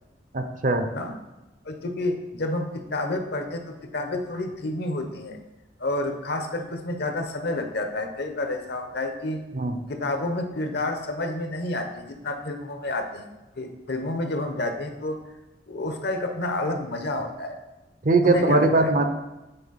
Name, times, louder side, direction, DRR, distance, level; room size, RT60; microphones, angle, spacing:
voice 1, 0.3-0.9 9.5-9.7 18.0-19.0, right 2 dB, 45° right, 7 dB, 0.7 m, -20 dB
voice 2, 1.6-5.4 5.8-9.4 9.9-13.3 13.6-15.2 15.7-17.6 18.2-18.9, left 2 dB, 60° left, 6 dB, 0.8 m, -29 dB
8.9 x 4.4 x 4.1 m, 1.0 s
head